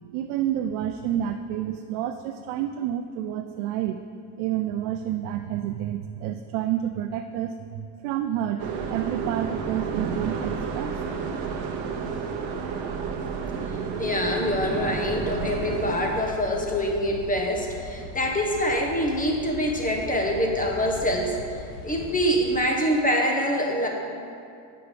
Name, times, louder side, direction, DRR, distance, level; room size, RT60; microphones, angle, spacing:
voice 1, 0.1-4.0 4.4-11.0, right 11 dB, 85° right, 6 dB, 0.6 m, -29 dB
sound 1, 8.6-16.1, right 5 dB, 65° right, 1.1 m, -31 dB
voice 2, 14.0-21.4 21.8-23.9, equal, 15° left, 0 dB, 1.2 m, -25 dB
sound 2, 15.2-22.6, left 2 dB, 70° left, 1.3 m, -40 dB
8.5 x 5.8 x 5.1 m, 2.4 s
cardioid pair, 110°, 50 cm